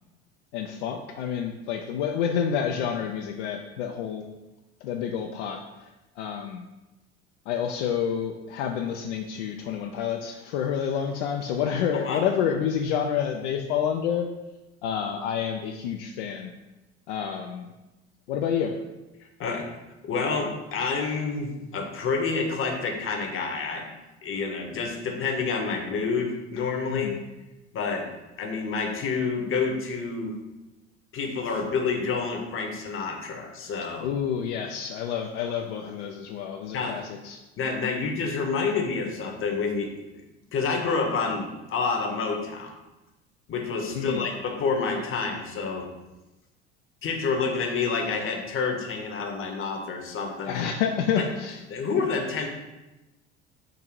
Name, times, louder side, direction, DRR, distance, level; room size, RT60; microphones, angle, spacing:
voice 1, 0.5-4.3 4.8-5.9 6.2-6.6 7.5-14.3 14.8-16.5 17.1-17.7 18.3-18.8 26.9-27.2 34.0-37.4 44.0-44.3 50.4-51.6, left 8 dB, 65° left, 2 dB, 0.5 m, -29 dB
voice 2, 20.0-23.9 24.2-27.2 27.7-28.1 28.4-30.4 31.1-34.1 36.7-37.0 37.6-39.9 40.1-40.2 40.5-42.7 43.5-45.9 47.0-50.6 51.2-51.3 51.7-52.5, left 4 dB, 35° left, 2 dB, 0.9 m, -28 dB
3.8 x 2.7 x 4.6 m, 1.0 s
figure-of-eight pair, 70°, 37 cm